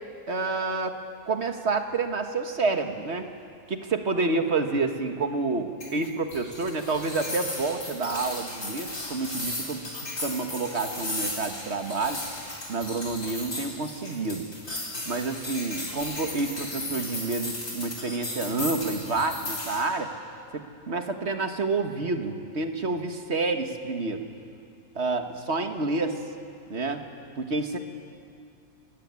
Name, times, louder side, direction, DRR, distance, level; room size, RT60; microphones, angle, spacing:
voice 1, 0.3-1.0 1.2-3.3 3.7-9.8 10.2-12.2 12.7-14.5 15.0-20.1 20.5-24.2 24.9-26.2 26.7-27.0 27.4-27.8, right 3 dB, 50° right, 6 dB, 1.7 m, -29 dB
sound 1, 5.8-19.8, left 2 dB, 60° left, 4.6 m, -35 dB
26.0 x 16.0 x 9.5 m, 2.5 s
omnidirectional pair, 1.5 m